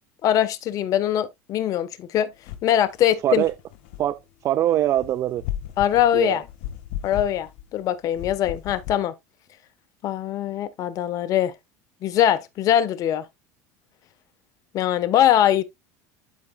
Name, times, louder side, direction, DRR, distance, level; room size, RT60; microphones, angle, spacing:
voice 1, 0.2-2.3 2.6-3.4 5.8-6.4 7.0-9.1 10.0-11.5 12.0-13.2 14.7-15.6, left 11 dB, 50° left, 1.1 m, -22 dB
sound 1, 2.5-2.7 3.1-4.1 4.9-7.8 8.1-9.0, left 11 dB, 70° left, 1.5 m, -35 dB
voice 2, 3.2-3.5 4.0-5.4 6.1-6.4, right 12 dB, 40° right, 0.4 m, -23 dB
12.5 x 4.9 x 2.2 m
supercardioid pair, 110°, 8 cm